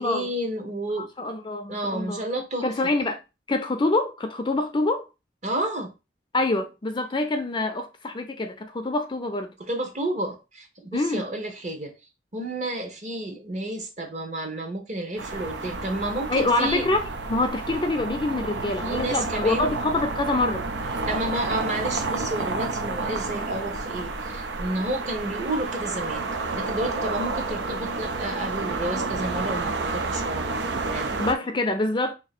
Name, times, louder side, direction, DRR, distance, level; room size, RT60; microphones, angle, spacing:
voice 1, 0.0-1.1 1.7-2.9 5.4-5.9 9.6-11.9 12.3-16.9 18.8-19.7 21.1-26.3 26.5-30.6 30.9-31.1, right 1 dB, 45° right, 1.0 m, -31 dB
voice 2, 1.0-2.2 2.6-3.2 3.5-5.1 6.3-9.5 10.9-11.2 16.3-20.6 31.2-32.1, left 2 dB, 25° left, 0.4 m, -26 dB
sound 1, 15.2-31.3, right 3 dB, 90° right, 0.6 m, -30 dB
2.8 x 2.8 x 4.1 m
head